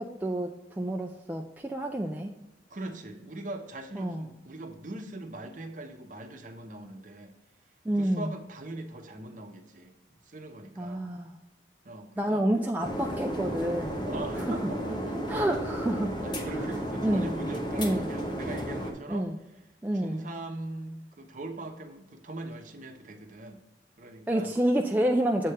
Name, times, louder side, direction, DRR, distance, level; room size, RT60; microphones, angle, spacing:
voice 1, 0.0-2.3 4.0-4.3 7.8-8.3 10.8-11.3 12.2-14.0 14.5-14.6 15.3-16.1 17.0-17.3 17.8-18.0 19.1-19.3 19.8-20.3 24.3-25.5, right 1 dB, 10° right, 2 dB, 0.3 m, -28 dB
voice 2, 2.7-7.3 7.9-11.1 11.8-12.4 14.0-15.2 16.2-19.3 19.9-23.6 24.0-24.5, right 2 dB, 40° right, 5 dB, 0.7 m, -41 dB
sound 1, 12.8-18.9, equal, 25° left, 0.9 m, -33 dB
7.5 x 3.3 x 5.5 m, 0.99 s
head